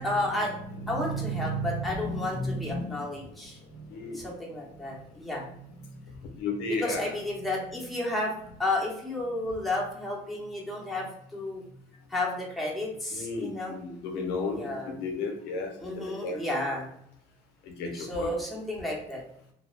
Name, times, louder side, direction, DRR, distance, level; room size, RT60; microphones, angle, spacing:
voice 1, 0.0-0.5 0.9-3.6 4.1-5.4 6.8-8.3 8.6-11.1 11.3-11.6 12.1-13.7 14.5-14.9 15.8-16.9 17.9-19.2, left 2 dB, ahead, -4 dB, 0.8 m, -32 dB
voice 2, 0.6-3.0 3.6-4.6 4.9-5.3 5.8-6.0 6.3-7.1 13.1-16.4 17.6-18.3, left 1 dB, 90° left, 3 dB, 0.6 m, -34 dB
2.4 x 2.0 x 3.0 m, 0.72 s
cardioid pair, 110°, 17 cm